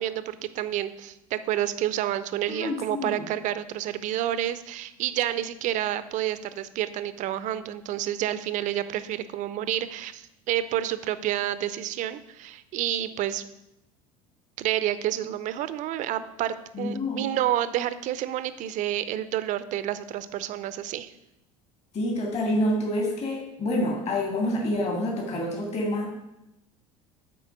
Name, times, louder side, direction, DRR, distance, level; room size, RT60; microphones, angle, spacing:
voice 1, 0.0-13.5 14.6-21.1, right 12 dB, 45° right, 14 dB, 0.6 m, -29 dB
voice 2, 2.6-3.2 16.7-17.3 21.9-26.2, left 1 dB, 35° left, 0 dB, 2.1 m, -27 dB
8.4 x 4.5 x 5.9 m, 0.88 s
figure-of-eight pair, 70°, 18 cm